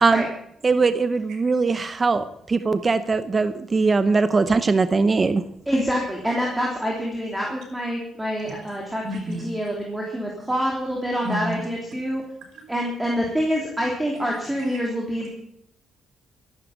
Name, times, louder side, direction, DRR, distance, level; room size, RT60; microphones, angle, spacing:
voice 1, 0.6-5.4, right 4 dB, 30° right, 11 dB, 0.8 m, -21 dB
voice 2, 5.7-9.0 9.4-12.2 12.7-15.3, equal, 10° right, -2 dB, 3.3 m, -26 dB
voice 3, 9.0-9.6 10.4-10.5 11.2-11.6 12.5-12.6 14.1-14.8, equal, 80° right, 3 dB, 5.7 m, -33 dB
14.0 x 11.5 x 7.3 m, 0.74 s
cardioid pair, 115°, 0 cm